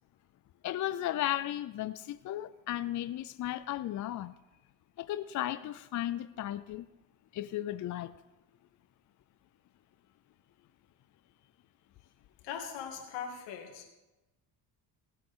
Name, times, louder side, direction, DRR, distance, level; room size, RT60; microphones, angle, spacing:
voice 1, 0.6-4.3 5.0-6.8 7.3-8.1, left 13 dB, 45° left, 0.5 m, -35 dB
voice 2, 12.4-13.9, left 7 dB, 85° left, 2.5 m, -40 dB
19.0 x 8.2 x 3.7 m
cardioid pair, 100°, 42 cm